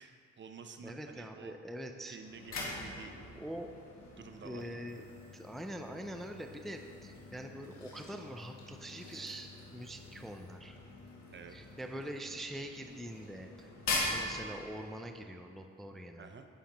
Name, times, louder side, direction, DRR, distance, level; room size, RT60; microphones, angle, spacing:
voice 1, 0.0-1.6 2.1-3.1 4.2-4.6 11.3-11.6 16.2-16.5, right 5 dB, 40° right, 7 dB, 0.6 m, -50 dB
voice 2, 0.8-2.2 3.4-3.7 4.4-5.0 5.3-10.8 11.5-13.7 14.0-16.3, right 1 dB, ahead, 4 dB, 0.5 m, -44 dB
sound 1, 2.1-15.1, left 2 dB, 60° left, 2.1 m, -43 dB
10.0 x 8.0 x 3.0 m, 2.4 s
cardioid pair, 90°, 30 cm